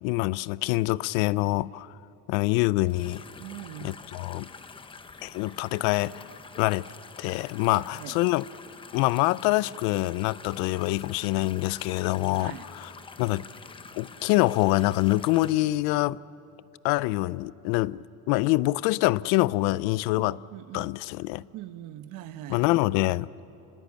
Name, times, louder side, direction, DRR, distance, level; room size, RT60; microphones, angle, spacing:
voice 1, 0.0-1.9 2.3-3.2 3.8-4.5 5.2-6.2 6.6-6.9 7.2-8.5 8.9-12.9 13.2-13.5 13.9-16.2 16.8-20.4 20.7-21.4 22.5-23.3, left 19 dB, 85° left, 0.6 m, -25 dB
sound 1, 2.8-15.5, left 4 dB, 15° left, 0.8 m, -46 dB
voice 2, 3.4-4.0 7.7-8.2 12.4-12.7 20.2-20.9 21.5-22.6, right 13 dB, 65° right, 1.2 m, -42 dB
27.0 x 20.5 x 8.5 m
cardioid pair, 150°, 34 cm